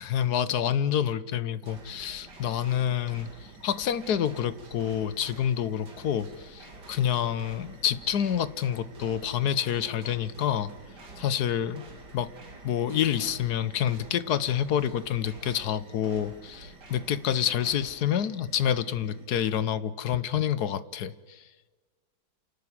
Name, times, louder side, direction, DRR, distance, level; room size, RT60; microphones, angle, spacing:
voice 1, 0.0-3.3 3.6-10.7 11.2-11.8 12.1-12.3 12.6-21.1, left 9 dB, 60° left, 16 dB, 1.2 m, -28 dB
sound 1, 1.6-19.3, right 2 dB, 55° right, 3.2 m, -49 dB
28.5 x 12.0 x 9.8 m, 1.3 s
omnidirectional pair, 2.1 m